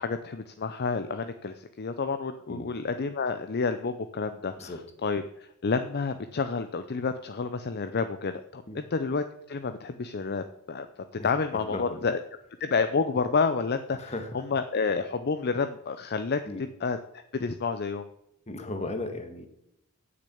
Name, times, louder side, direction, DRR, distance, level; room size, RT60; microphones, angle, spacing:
voice 1, 0.0-10.9 11.2-12.2 12.6-16.4 16.8-17.0 17.3-18.0, left 4 dB, 45° left, 9 dB, 0.6 m, -29 dB
voice 2, 11.2-12.1 14.0-14.3 16.5-16.7 18.5-19.5, left 2 dB, 30° left, 7 dB, 1.5 m, -36 dB
8.5 x 6.8 x 8.4 m, 0.80 s
head